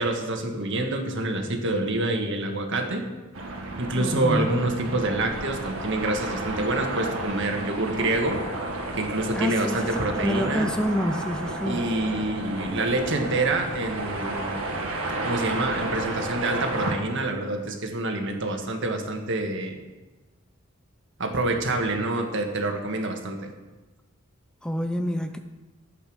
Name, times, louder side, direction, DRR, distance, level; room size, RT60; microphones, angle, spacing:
voice 1, 0.0-3.1 3.8-8.4 8.9-10.7 11.6-14.5 15.2-19.8 21.2-23.5, right 2 dB, 60° right, 3 dB, 1.7 m, -27 dB
sound 1, 3.3-16.9, right 2 dB, 80° right, 1.8 m, -32 dB
voice 2, 4.0-4.5 9.3-11.8 24.6-25.4, equal, 5° left, 7 dB, 0.5 m, -27 dB
12.0 x 8.1 x 6.3 m, 1.2 s
head